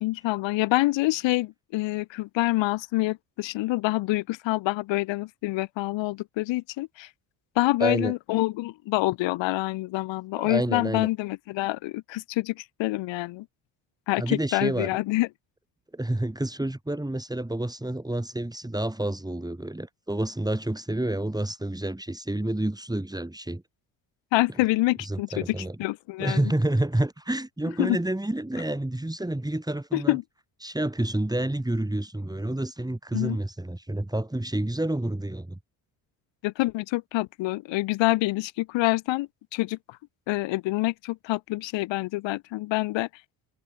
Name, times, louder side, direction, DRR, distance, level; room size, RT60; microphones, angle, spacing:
voice 1, 0.0-7.1 7.5-13.5 14.1-15.3 24.3-26.4 27.8-28.0 29.9-30.2 33.1-33.4 36.4-40.0 40.3-43.1, left 19 dB, 75° left, 1.1 m, -26 dB
voice 2, 7.8-8.1 10.3-11.1 14.2-14.9 15.9-23.6 25.0-25.8 26.2-30.2 30.6-35.6, right 1 dB, 10° right, 6.7 m, -29 dB
supercardioid pair, 75°, 45 cm